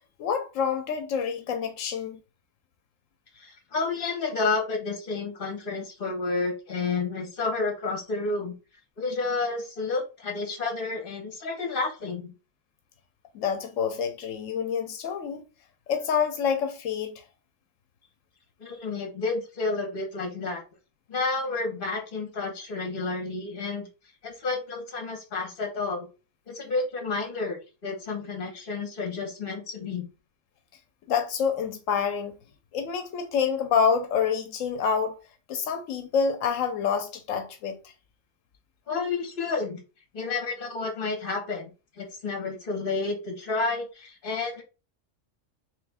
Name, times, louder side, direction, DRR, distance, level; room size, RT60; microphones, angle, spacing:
voice 1, 0.2-2.2 13.3-15.4 15.9-17.2 31.1-32.3 32.7-35.2 35.5-37.8, left 6 dB, 85° left, 1.0 m, -27 dB
voice 2, 3.3-8.5 9.0-12.3 18.6-20.6 21.1-23.9 24.2-26.1 26.5-30.1 38.9-39.8 40.1-41.7 42.0-44.6, left 3 dB, 45° left, 1.3 m, -30 dB
3.3 x 3.3 x 3.4 m
omnidirectional pair, 1.3 m